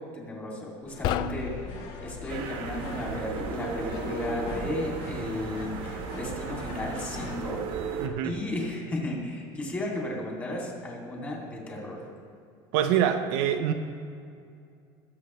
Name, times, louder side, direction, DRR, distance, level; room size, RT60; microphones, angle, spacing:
voice 1, 0.0-1.7 2.0-7.6 8.2-12.0, left 1 dB, 15° left, -3 dB, 2.6 m, -34 dB
sound 1, 0.8-7.4, left 3 dB, 65° left, 2.6 m, -42 dB
sound 2, 0.9-2.5, left 11 dB, 40° left, 0.4 m, -33 dB
sound 3, 2.3-8.1, right 5 dB, 50° right, 1.1 m, -35 dB
voice 2, 8.0-8.4 12.7-13.7, right 9 dB, 75° right, 7 dB, 0.8 m, -25 dB
21.0 x 7.9 x 3.2 m, 2.4 s
cardioid pair, 165°, 11 cm